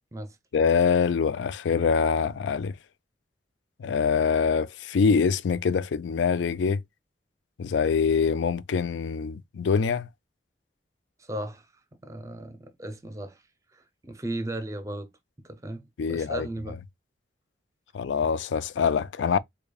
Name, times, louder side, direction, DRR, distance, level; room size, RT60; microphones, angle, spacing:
voice 1, 0.5-2.8 3.8-6.8 7.6-10.1 16.0-16.5 17.9-19.4, left 6 dB, 85° left, 0.4 m, -24 dB
voice 2, 11.2-11.7 11.9-13.4 13.7-15.1 15.4-16.8, right 1 dB, 20° right, 0.5 m, -36 dB
5.0 x 2.2 x 2.3 m
head